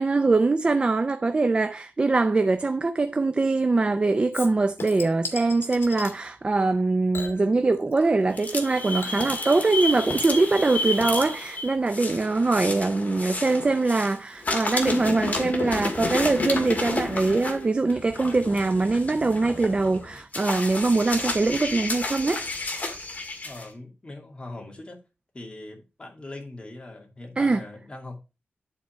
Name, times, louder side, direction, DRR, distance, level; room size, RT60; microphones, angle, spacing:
voice 1, 0.0-22.5 27.4-27.6, right 3 dB, 25° right, 0.5 m, -23 dB
Chink clink / Liquid, 4.3-6.2 7.1-8.3 8.5-17.6 17.9-18.0, left 4 dB, 80° left, 2.0 m, -42 dB
sound 1, 8.3-14.1 14.4-23.6, left 2 dB, 40° left, 1.9 m, -31 dB
voice 2, 23.4-25.0 25.3-28.2, left 2 dB, 25° left, 2.4 m, -41 dB
11.0 x 4.3 x 4.4 m
wide cardioid pair, 175°, 4 cm